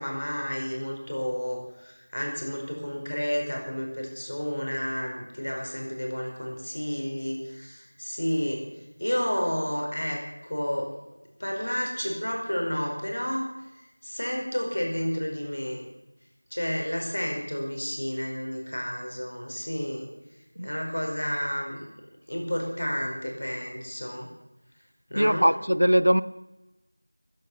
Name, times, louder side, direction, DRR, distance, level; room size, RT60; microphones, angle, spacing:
voice 1, 0.0-10.9 11.4-15.8 16.5-20.1 20.6-21.9 22.3-24.3 25.1-25.5, equal, 40° left, 1 dB, 5.0 m, -31 dB
voice 2, 25.2-26.2, equal, 65° right, 17 dB, 0.7 m, -21 dB
15.0 x 14.5 x 6.6 m, 0.99 s
figure-of-eight pair, 175°, 0 cm